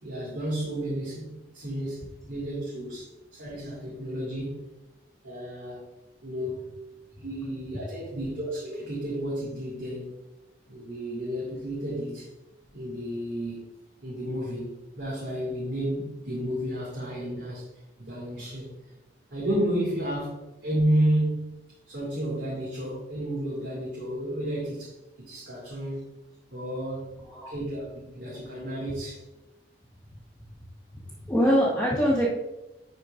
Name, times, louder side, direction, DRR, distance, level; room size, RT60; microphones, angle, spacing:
voice 1, 0.0-4.6 5.2-5.8 6.2-6.7 7.2-10.2 10.7-12.3 12.7-13.7 14.0-17.6 18.0-18.7 19.3-21.6 21.9-24.9 25.2-26.0 26.5-27.1 27.5-29.2, right 1 dB, 85° right, -6 dB, 2.2 m, -31 dB
voice 2, 27.2-27.5 31.0-32.3, equal, 5° left, -6 dB, 1.5 m, -24 dB
11.5 x 4.6 x 2.5 m, 0.99 s
head